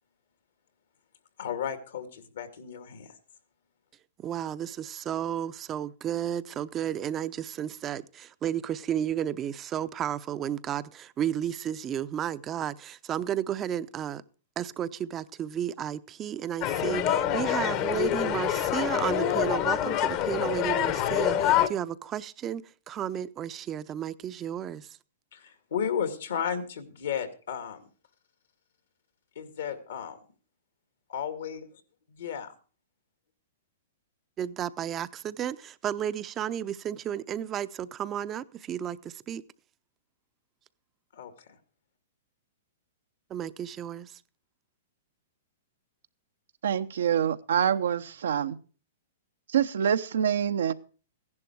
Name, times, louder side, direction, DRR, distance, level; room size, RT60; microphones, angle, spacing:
voice 1, 1.4-3.1 25.3-27.9 29.4-30.2 31.1-31.7 32.1-32.5 41.1-41.3, left 8 dB, 75° left, 2.2 m, -34 dB
voice 2, 4.2-14.2 14.6-24.9 34.4-39.4 43.3-44.1, right 10 dB, 25° right, 0.7 m, -33 dB
sound 1, 16.6-21.7, left 11 dB, 40° left, 1.1 m, -26 dB
voice 3, 46.6-48.6 49.5-50.7, right 8 dB, 75° right, 0.9 m, -26 dB
15.5 x 11.0 x 4.6 m
hypercardioid pair, 120°, 0 cm